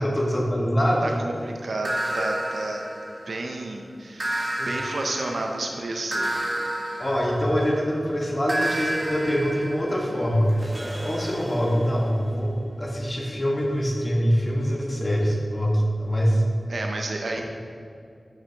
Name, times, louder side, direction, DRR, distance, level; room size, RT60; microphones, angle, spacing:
voice 1, 0.0-1.1 4.6-4.7 7.0-10.7 11.0-16.4, equal, 30° left, -2 dB, 1.4 m, -24 dB
voice 2, 1.0-2.8 3.3-6.4 6.9-7.0 16.7-17.5, right 2 dB, 80° right, 2 dB, 0.6 m, -31 dB
sound 1, 1.8-3.6 4.2-7.9 8.5-12.2, right 1 dB, 35° right, 1.1 m, -31 dB
9.6 x 5.8 x 2.9 m, 2.5 s
wide cardioid pair, 70°, 0 cm